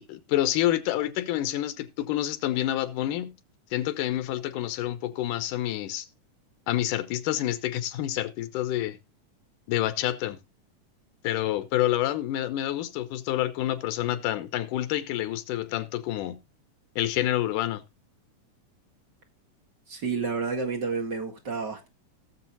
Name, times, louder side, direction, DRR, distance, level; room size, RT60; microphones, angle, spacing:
voice 1, 0.0-3.3 3.7-6.1 6.7-9.0 9.7-10.4 11.2-16.4 17.0-17.8, left 13 dB, 80° left, 2.5 m, -28 dB
voice 2, 19.9-21.9, right 5 dB, 40° right, 2.1 m, -30 dB
18.0 x 7.1 x 2.7 m
omnidirectional pair, 3.7 m